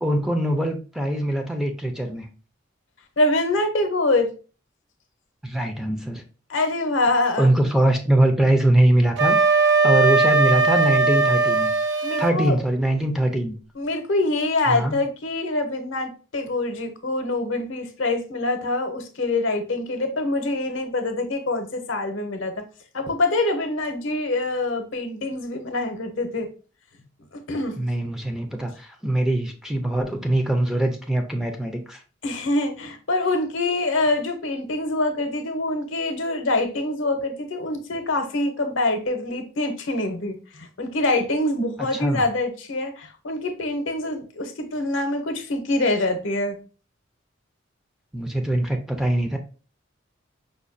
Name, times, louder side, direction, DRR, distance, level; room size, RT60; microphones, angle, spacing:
voice 1, 0.0-2.3 5.4-6.2 7.4-11.7 12.2-13.5 14.7-15.0 27.8-32.0 41.9-42.2 48.1-49.4, right 1 dB, 5° right, 0.4 m, -22 dB
voice 2, 3.2-4.3 6.5-7.5 12.0-12.6 13.7-22.6 22.9-26.5 27.5-27.9 32.2-46.6, left 2 dB, 75° left, 0.7 m, -25 dB
Wind instrument woodwind instrument, 9.2-12.4, right 4 dB, 65° right, 0.4 m, -19 dB
5.0 x 2.2 x 2.5 m
head